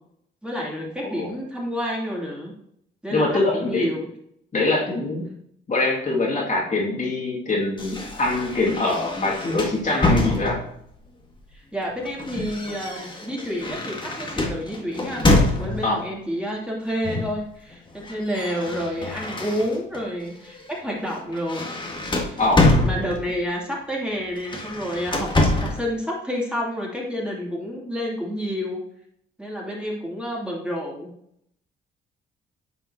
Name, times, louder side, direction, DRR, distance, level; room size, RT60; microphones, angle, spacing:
voice 1, 0.4-2.5 3.0-4.0 11.5-15.2 15.6-21.7 22.2-22.4 22.8-28.8 29.4-31.1, equal, 5° right, -4 dB, 2.7 m, -29 dB
voice 2, 3.1-3.9 4.5-5.3 5.7-10.6 15.8-16.0 22.4-22.7, left 2 dB, 40° left, -3 dB, 2.3 m, -23 dB
sound 1, 7.8-10.9 11.8-16.0 17.0-17.4 17.7-20.0 20.5-20.7 21.1-23.5 24.4-25.9, left 2 dB, 25° left, 1.6 m, -25 dB
9.9 x 5.6 x 2.8 m, 0.72 s
cardioid pair, 90°, 20 cm